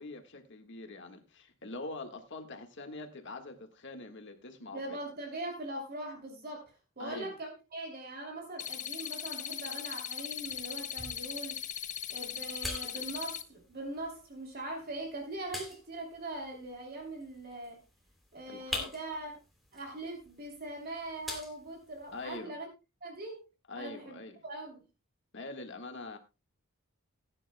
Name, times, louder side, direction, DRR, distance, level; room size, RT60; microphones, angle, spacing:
voice 1, 0.0-5.0 7.0-7.3 18.5-18.9 22.1-22.5 23.7-24.4 25.3-26.2, left 2 dB, 55° left, 6 dB, 1.6 m, -44 dB
voice 2, 4.7-6.7 7.0-11.6 12.1-17.8 18.3-19.3 19.7-22.7 23.0-23.4 23.7-24.8, right 2 dB, 45° right, 2 dB, 2.8 m, -41 dB
sound 1, 8.6-13.4, left 10 dB, 35° left, 0.6 m, -39 dB
sound 2, 10.4-22.4, left 1 dB, ahead, 3.0 m, -46 dB
18.0 x 9.9 x 2.2 m, 0.27 s
head